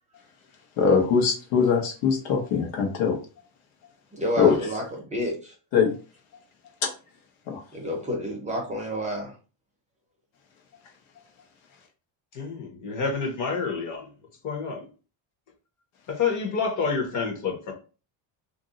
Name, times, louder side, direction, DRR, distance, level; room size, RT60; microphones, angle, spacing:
voice 1, 0.8-3.2 4.4-4.6 5.7-5.9 6.8-6.9 7.5-7.6, left 6 dB, 70° left, 1.0 m, -22 dB
voice 2, 4.1-4.8 5.1-5.5 7.7-9.3, equal, 15° right, 0.5 m, -29 dB
voice 3, 12.3-14.1 14.4-14.9 16.1-17.7, left 5 dB, 40° left, 0.8 m, -28 dB
2.6 x 2.0 x 3.8 m
cardioid pair, 155°, 50 cm